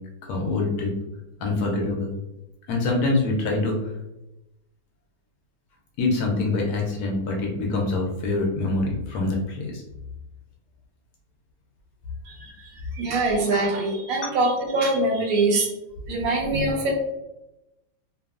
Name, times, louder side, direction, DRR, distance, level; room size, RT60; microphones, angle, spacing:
voice 1, 0.3-0.9 1.4-2.1 2.7-3.9 6.0-9.8 14.2-14.3, left 2 dB, 70° left, 0 dB, 0.9 m, -25 dB
voice 2, 12.3-15.7 16.1-17.0, right 2 dB, 65° right, -1 dB, 0.9 m, -24 dB
2.8 x 2.3 x 2.3 m, 0.94 s
omnidirectional pair, 2.0 m